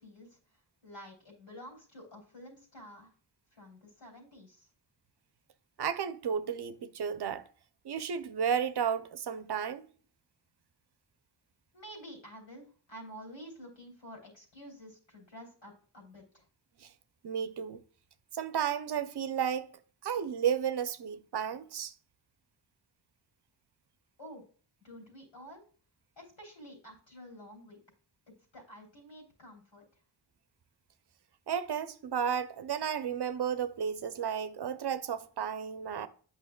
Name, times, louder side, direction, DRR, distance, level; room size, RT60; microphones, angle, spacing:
voice 1, 0.0-3.1 3.5-4.7 11.7-16.4 24.2-24.4 24.8-25.6 26.2-27.8 28.3-29.8, equal, 75° left, 3.2 m, -50 dB
voice 2, 5.8-7.4 7.8-9.9 16.8-16.9 17.2-17.8 18.3-19.7 20.0-21.9 31.5-36.1, right 8 dB, 60° right, 0.6 m, -33 dB
8.6 x 5.6 x 2.2 m
cardioid pair, 50°, 45 cm